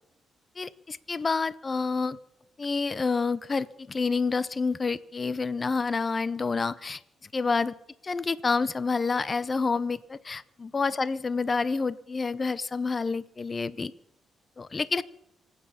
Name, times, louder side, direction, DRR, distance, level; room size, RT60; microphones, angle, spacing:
voice 1, 0.6-2.2 2.6-7.0 7.3-7.7 8.0-13.9 14.6-15.0, left 4 dB, 35° left, 17 dB, 0.6 m, -28 dB
26.0 x 8.8 x 5.6 m, 0.82 s
cardioid pair, 90°, 0 cm